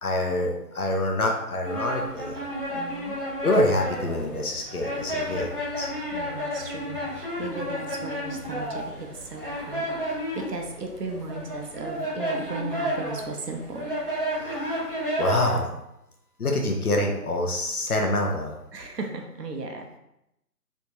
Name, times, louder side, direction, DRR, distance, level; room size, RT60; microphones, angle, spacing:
voice 1, 0.0-2.4 3.4-5.5 5.8-5.9 14.3-14.8 15.2-15.7 16.4-18.5, left 1 dB, 65° left, 2 dB, 0.8 m, -26 dB
sound 1, 1.6-15.6, equal, 35° right, 0.9 m, -32 dB
voice 2, 2.7-3.2 6.1-13.9 18.7-19.9, right 3 dB, 80° right, 2 dB, 0.9 m, -36 dB
3.3 x 3.1 x 2.8 m, 0.85 s
figure-of-eight pair, 180°, 47 cm